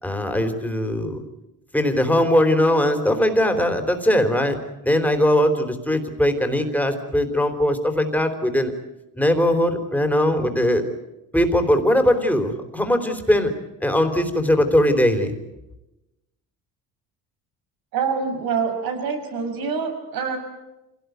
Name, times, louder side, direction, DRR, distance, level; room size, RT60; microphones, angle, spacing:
voice 1, 0.0-1.2 1.7-4.6 4.8-8.7 9.2-10.8 11.3-13.5 13.8-15.3, left 1 dB, 5° left, 6 dB, 3.7 m, -20 dB
voice 2, 17.9-20.4, right 6 dB, 80° right, 5 dB, 6.2 m, -25 dB
26.5 x 18.0 x 9.4 m, 0.96 s
cardioid pair, 110°, 36 cm